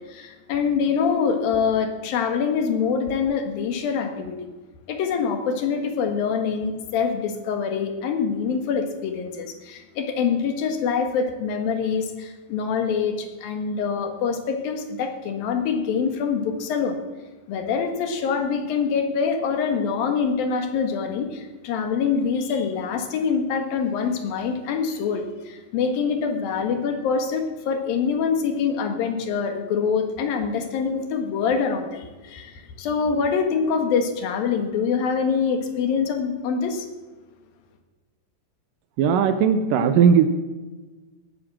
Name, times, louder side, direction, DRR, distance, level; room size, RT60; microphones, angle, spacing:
voice 1, 0.1-4.4 4.9-17.0 17.5-36.9, left 6 dB, 75° left, 5 dB, 3.3 m, -25 dB
voice 2, 39.0-40.3, right 7 dB, 75° right, 10 dB, 2.3 m, -17 dB
18.5 x 9.1 x 7.5 m, 1.3 s
omnidirectional pair, 4.3 m